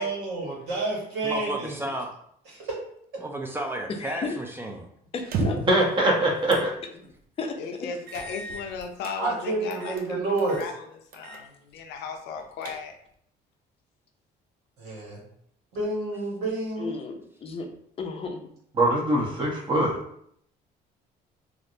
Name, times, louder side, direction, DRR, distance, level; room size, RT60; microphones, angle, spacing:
voice 1, 0.0-1.7 9.2-10.6 14.8-15.2 15.7-16.9, right 2 dB, 85° right, -3 dB, 1.4 m, -29 dB
voice 2, 1.2-2.1 3.2-4.8, right 1 dB, 15° right, 2 dB, 0.4 m, -32 dB
voice 3, 4.0-4.3 5.4-5.6 7.0-7.1 7.4-7.6 16.8-17.7 18.0-18.5, left 4 dB, 35° left, 4 dB, 0.5 m, -33 dB
sound 1, 5.2-5.8 6.5-6.7 7.1-7.2 8.1-9.2 9.7-10.1 10.4-10.7 11.1-11.4 11.8-11.9 12.3-13.1, right 4 dB, 65° right, 0.5 m, -34 dB
voice 4, 5.7-6.7 18.8-20.0, right 1 dB, 30° right, -2 dB, 1.0 m, -22 dB
voice 5, 7.6-10.7 11.1-13.0, left 5 dB, 85° left, 4 dB, 0.5 m, -36 dB
3.2 x 2.5 x 2.7 m, 0.67 s
cardioid pair, 110°, 17 cm